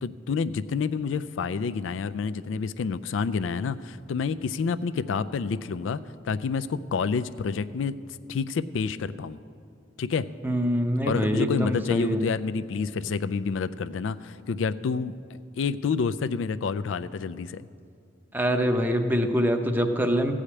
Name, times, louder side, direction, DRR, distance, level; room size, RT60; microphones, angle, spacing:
voice 1, 0.0-9.4 10.0-10.3 11.0-15.1 15.6-17.6, left 5 dB, 85° left, 14 dB, 0.4 m, -29 dB
voice 2, 10.4-12.3 18.3-20.3, equal, 10° right, 5 dB, 0.6 m, -24 dB
15.0 x 5.0 x 8.5 m, 2.3 s
head